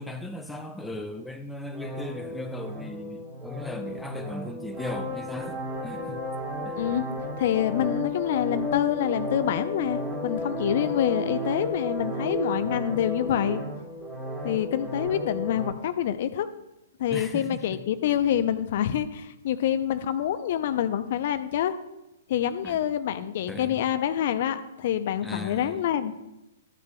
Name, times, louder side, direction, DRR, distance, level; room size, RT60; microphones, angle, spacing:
voice 1, 0.0-6.2 6.6-6.9 17.1-17.8 22.6-22.8 23.5-23.9 25.2-25.8, left 1 dB, 5° left, 4 dB, 0.8 m, -37 dB
sound 1, 1.7-15.7, left 1 dB, 15° right, 2.4 m, -33 dB
voice 2, 6.8-7.1 7.4-13.6 14.4-16.5 17.0-21.8 22.3-26.2, left 10 dB, 50° left, 10 dB, 0.6 m, -26 dB
13.5 x 9.4 x 2.3 m, 0.94 s
figure-of-eight pair, 115°, 0 cm